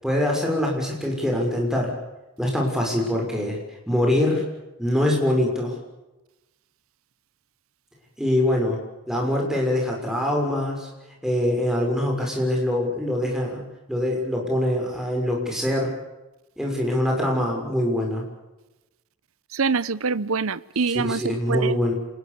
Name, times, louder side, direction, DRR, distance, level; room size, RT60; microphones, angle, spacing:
voice 1, 0.0-1.9 2.4-3.6 3.9-4.4 4.8-5.7 8.2-8.8 9.1-10.9 11.2-13.6 13.9-15.9 16.6-18.2 20.9-21.9, left 1 dB, ahead, 6.4 m, -23 dB
voice 2, 19.5-21.8, right 4 dB, 70° right, 0.8 m, -25 dB
28.0 x 20.5 x 7.1 m
head